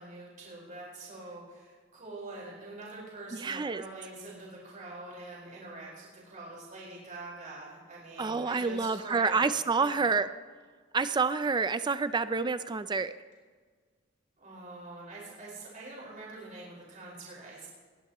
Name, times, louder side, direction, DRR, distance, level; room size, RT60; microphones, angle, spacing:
voice 1, 0.0-9.5 9.8-10.1 14.4-17.7, right 2 dB, 40° right, -5 dB, 4.7 m, -45 dB
voice 2, 3.3-3.8 8.2-10.3 10.9-13.1, right 4 dB, 20° right, 13 dB, 0.4 m, -28 dB
20.0 x 16.0 x 3.0 m, 1.5 s
head